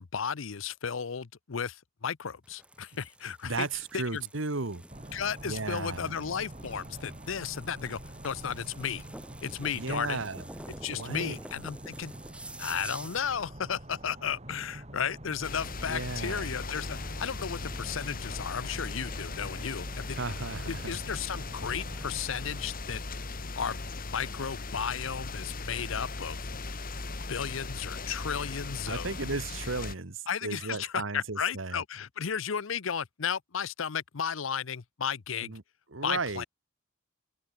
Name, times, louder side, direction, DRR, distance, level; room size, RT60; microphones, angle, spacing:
voice 1, 0.0-3.7 3.9-4.2 5.1-8.0 8.2-9.0 9.4-10.2 10.8-12.1 12.6-20.2 20.7-23.0 23.6-26.4 27.3-29.1 30.3-35.5 36.0-36.4, left 7 dB, 75° left, 0.7 m, -34 dB
sound 1, 2.4-13.4, right 1 dB, 5° right, 2.0 m, -48 dB
voice 2, 3.4-4.8 5.4-6.1 9.7-10.5 10.9-11.4 15.9-16.5 20.1-21.0 28.9-31.8 35.4-35.6 35.9-36.5, right 3 dB, 70° right, 1.7 m, -35 dB
sound 2, 4.9-22.7, right 1 dB, 35° right, 4.9 m, -47 dB
sound 3, 15.4-30.0, left 3 dB, 45° left, 1.6 m, -38 dB
open air
head